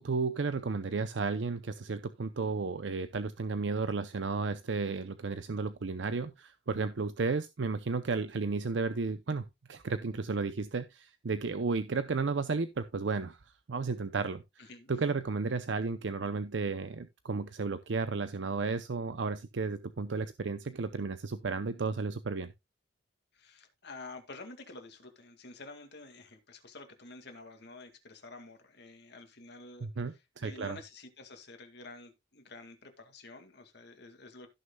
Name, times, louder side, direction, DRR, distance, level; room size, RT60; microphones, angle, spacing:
voice 1, 0.0-13.4 13.7-14.4 14.9-22.5 29.8-30.8, right 4 dB, 70° right, 0.6 m, -33 dB
voice 2, 14.6-14.9 23.3-29.9 30.4-34.5, left 3 dB, 60° left, 2.2 m, -49 dB
16.5 x 6.4 x 2.3 m
head